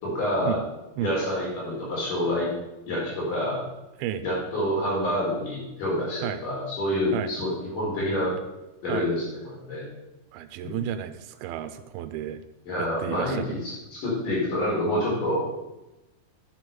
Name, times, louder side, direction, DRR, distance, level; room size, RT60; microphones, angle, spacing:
voice 1, 0.0-0.6 1.0-2.5 2.9-3.6 4.2-8.3 8.8-9.9 10.6-10.8 12.6-15.4, left 1 dB, 60° left, -5 dB, 6.0 m, -27 dB
voice 2, 10.3-12.4 12.8-13.6, right 11 dB, 80° right, 9 dB, 2.5 m, -32 dB
10.0 x 7.4 x 6.0 m, 0.98 s
omnidirectional pair, 4.4 m